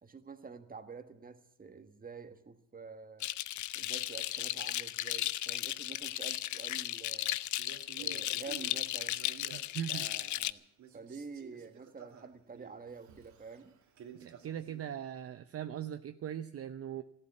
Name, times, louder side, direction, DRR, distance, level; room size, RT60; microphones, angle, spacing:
voice 1, 0.0-3.3 3.7-7.4 8.0-9.3 9.9-10.6 10.9-13.7, right 4 dB, 30° right, 9 dB, 1.6 m, -48 dB
sound 1, 3.2-10.5, left 14 dB, 75° left, 0.6 m, -35 dB
Male speech man speaking, 7.5-10.5 10.8-14.9, right 7 dB, 70° right, 2.3 m, -53 dB
voice 2, 9.5-10.1 14.2-17.0, right 10 dB, 50° right, 10 dB, 0.7 m, -40 dB
14.0 x 12.0 x 8.4 m, 0.72 s
cardioid pair, 90°, 30 cm